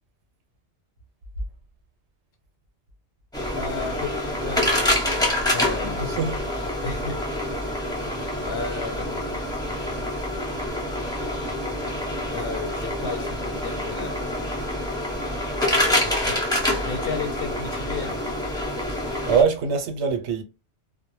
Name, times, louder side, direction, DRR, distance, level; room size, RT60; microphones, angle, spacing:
sound 1, 3.3-19.4, left 1 dB, 5° left, 0.7 m, -26 dB
voice 1, 3.6-4.1 4.4-6.2 6.8-7.9 8.4-9.5 12.3-14.5 16.0-16.4 16.8-18.1, left 4 dB, 65° left, 0.7 m, -34 dB
voice 2, 6.0-6.4 8.1-8.2 18.9-19.0 19.3-20.4, right 6 dB, 85° right, 0.9 m, -23 dB
2.1 x 2.0 x 3.0 m
omnidirectional pair, 1.1 m